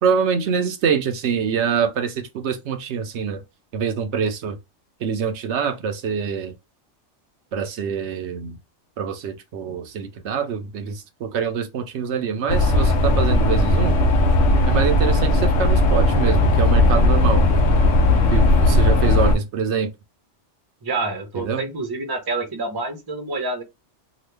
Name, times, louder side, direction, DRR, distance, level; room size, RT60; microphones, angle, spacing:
voice 1, 0.0-3.4 3.7-4.6 5.0-6.5 7.5-8.6 9.0-14.0 14.7-17.5 18.3-19.9 21.3-21.6, right 6 dB, 75° right, 0.9 m, -25 dB
sound 1, 12.5-19.3, left 1 dB, 90° left, 1.0 m, -17 dB
voice 2, 20.8-23.6, right 3 dB, 25° right, 0.6 m, -27 dB
2.9 x 2.3 x 3.2 m
omnidirectional pair, 1.2 m